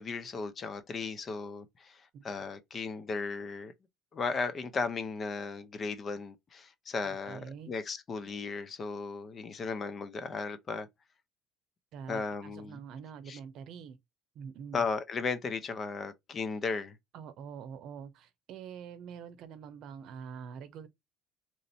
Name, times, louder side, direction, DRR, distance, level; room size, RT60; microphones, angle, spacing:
voice 1, 0.0-3.7 4.1-10.9 12.1-12.8 13.3-13.4 14.7-17.0, left 4 dB, 35° left, 0.7 m, -36 dB
voice 2, 7.0-7.7 11.9-14.0 14.3-14.8 17.1-20.9, right 7 dB, 65° right, 0.7 m, -45 dB
3.1 x 2.6 x 4.2 m
supercardioid pair, 95°, 0 cm